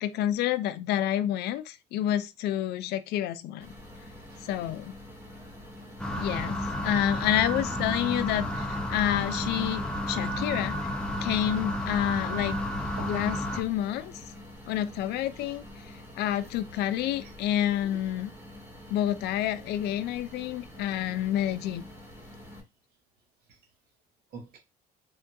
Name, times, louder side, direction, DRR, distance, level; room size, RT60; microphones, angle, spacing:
voice 1, 0.0-3.7 4.4-4.9 6.2-6.6 6.8-10.8 11.2-12.6 13.1-14.1 14.7-15.6 16.2-18.3 18.9-21.8, left 12 dB, 75° left, 0.4 m, -29 dB
sound 1, 3.6-22.6, left 1 dB, 15° right, 1.1 m, -47 dB
voice 2, 5.3-5.9 7.1-7.3 8.0-8.2 9.8-9.9 13.0-13.2 15.3-15.6 16.3-16.4 16.7-16.9 17.2-17.3 17.8-18.1 23.5-23.6 24.3-24.6, right 3 dB, 65° right, 1.0 m, -48 dB
sound 2, 6.0-13.6, left 1 dB, 5° left, 0.5 m, -31 dB
3.6 x 2.3 x 2.6 m
cardioid pair, 110°, 17 cm